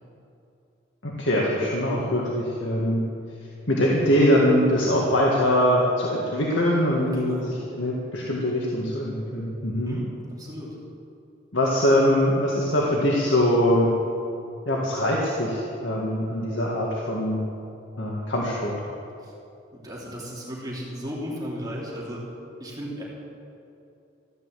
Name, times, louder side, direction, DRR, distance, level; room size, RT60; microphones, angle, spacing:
voice 1, 1.0-3.0 3.7-10.0 11.5-13.9 14.7-17.4 18.0-18.7, equal, 85° left, -4 dB, 2.0 m, -23 dB
voice 2, 7.1-7.6 9.9-10.8 19.2-19.3 19.7-22.2 22.6-23.0, equal, 20° right, -5 dB, 2.9 m, -35 dB
15.0 x 11.0 x 7.6 m, 2.7 s
head